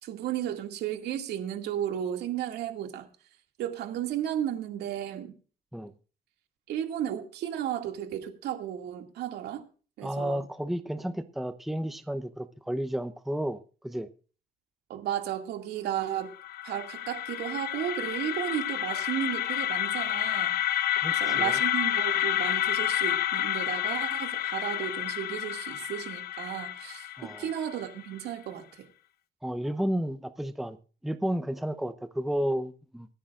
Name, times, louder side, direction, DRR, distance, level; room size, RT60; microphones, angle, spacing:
voice 1, 0.0-3.1 3.6-5.4 6.7-9.6 10.0-10.5 14.9-16.3 16.6-20.6 21.1-28.9, right 10 dB, 75° right, 5 dB, 2.3 m, -34 dB
voice 2, 10.0-14.1 21.0-21.6 27.2-27.5 29.4-30.8 31.0-33.1, equal, ahead, 10 dB, 0.8 m, -32 dB
sound 1, 16.2-28.1, left 12 dB, 65° left, 0.8 m, -30 dB
25.5 x 10.0 x 2.5 m, 0.37 s
cardioid pair, 110°, 17 cm